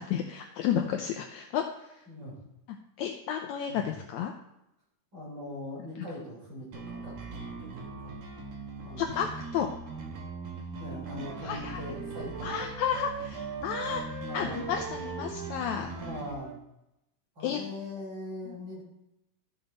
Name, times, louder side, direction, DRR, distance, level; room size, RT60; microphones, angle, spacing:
voice 1, 0.0-1.6 3.0-4.3 9.0-9.3 9.5-9.7 11.4-11.8 12.4-14.0 14.3-15.9 17.4-17.6, left 8 dB, 75° left, 4 dB, 1.9 m, -31 dB
voice 2, 2.1-2.4 3.7-4.0 5.1-8.2 8.8-9.2 10.8-12.6 12.9-13.0 14.2-14.6 15.9-16.5 17.4-18.8, left 1 dB, 35° right, -5 dB, 4.6 m, -41 dB
sound 1, 6.7-16.3, right 3 dB, 60° right, 2.7 m, -41 dB
Wind instrument woodwind instrument, 11.0-16.6, right 6 dB, 85° right, 1.3 m, -41 dB
14.0 x 6.6 x 4.0 m, 0.89 s
omnidirectional pair, 3.7 m